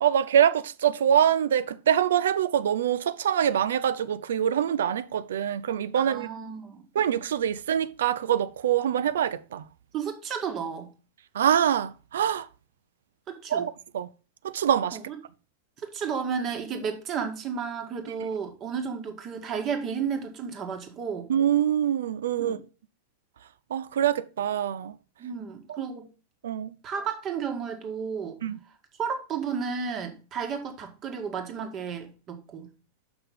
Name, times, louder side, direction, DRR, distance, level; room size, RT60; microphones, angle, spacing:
voice 1, 0.0-6.3 6.9-9.6 11.3-12.5 13.5-14.1 14.4-15.0 21.3-22.6 23.7-24.9 25.7-25.8 26.4-26.7 28.4-28.6, right 9 dB, 60° right, 0.4 m, -24 dB
voice 2, 6.0-6.9 9.9-10.9 13.3-13.7 14.9-15.2 15.8-21.3 22.4-22.6 25.2-26.1 26.8-28.4 29.0-32.7, right 6 dB, 30° right, 1.7 m, -33 dB
6.9 x 5.6 x 5.4 m
figure-of-eight pair, 90°, 0 cm